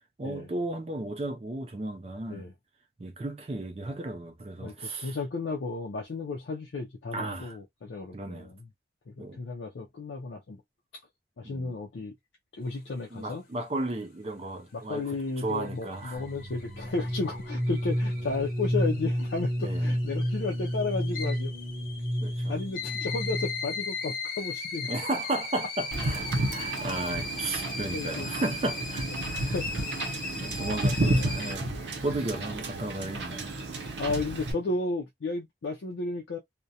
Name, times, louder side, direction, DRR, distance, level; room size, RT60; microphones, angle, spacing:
voice 1, 0.2-2.5 3.0-5.2 7.1-7.6 8.1-8.5 9.2-9.4 11.4-11.8 13.1-15.1 15.4-16.2 19.6-19.9 22.2-22.6 24.9-29.5 30.4-31.7 32.0-33.5, right 2 dB, 35° right, 0.4 m, -34 dB
voice 2, 4.6-8.7 9.1-10.6 11.4-12.1 12.6-13.4 14.7-21.5 22.5-24.9 27.9-28.3 29.5-29.8 31.1-31.4 34.0-36.4, left 3 dB, 80° left, 0.5 m, -33 dB
sound 1, 15.3-31.5, left 3 dB, 50° left, 0.7 m, -38 dB
sound 2, 16.1-23.8, equal, 10° left, 0.9 m, -31 dB
Wind / Boat Water vehicle, 25.9-34.5, right 2 dB, 80° right, 0.7 m, -32 dB
2.3 x 2.1 x 2.7 m
head